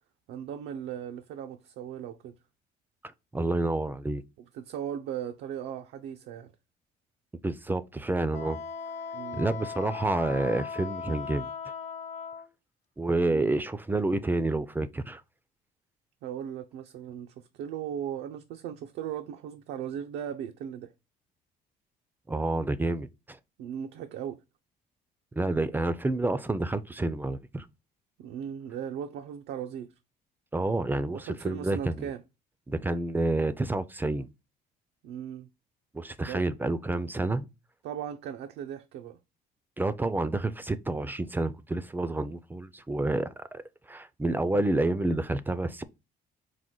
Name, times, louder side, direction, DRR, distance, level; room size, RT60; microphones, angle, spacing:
voice 1, 0.3-2.3 4.5-6.5 9.1-9.4 13.3-13.5 16.2-20.9 23.6-24.4 28.2-29.9 31.1-32.2 35.0-35.5 36.3-36.4 37.8-39.2, right 9 dB, 80° right, 0.4 m, -37 dB
voice 2, 3.3-4.2 7.4-8.6 9.4-11.5 13.0-15.2 22.3-23.4 25.3-27.6 30.5-32.1 32.7-34.3 35.9-37.5 39.8-43.6 43.9-45.8, right 2 dB, 10° right, 0.3 m, -29 dB
Wind instrument woodwind instrument, 8.3-12.5, left 6 dB, 40° left, 0.9 m, -38 dB
4.8 x 2.1 x 3.7 m
cardioid pair, 110°, 17 cm